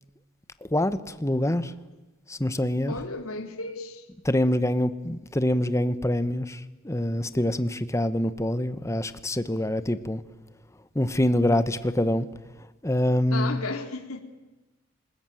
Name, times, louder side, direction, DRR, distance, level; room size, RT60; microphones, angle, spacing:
voice 1, 0.7-1.7 2.3-2.9 4.2-10.2 10.9-12.3 12.8-13.6, left 1 dB, 15° left, 1.0 m, -25 dB
voice 2, 2.9-4.1 13.3-14.2, left 3 dB, 85° left, 2.7 m, -34 dB
27.0 x 20.0 x 9.1 m
head